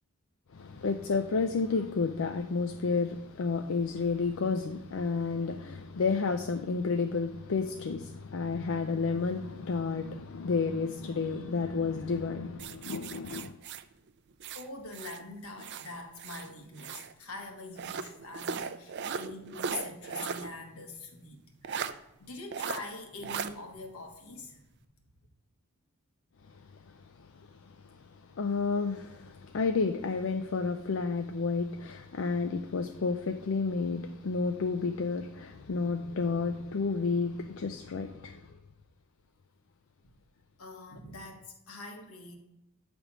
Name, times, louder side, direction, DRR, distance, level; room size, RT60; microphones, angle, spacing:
voice 1, 0.5-13.5 28.4-38.4, left 4 dB, 65° left, 6 dB, 0.5 m, -31 dB
sound 1, 12.6-15.2 15.6-17.1 17.8-20.5 20.8-20.9 21.6-21.9 22.5-22.8 23.2-23.5, right 6 dB, 55° right, 0.4 m, -37 dB
voice 2, 14.5-24.6 40.6-42.4, left 3 dB, 80° left, 3 dB, 1.4 m, -44 dB
8.6 x 3.4 x 6.1 m, 0.87 s
head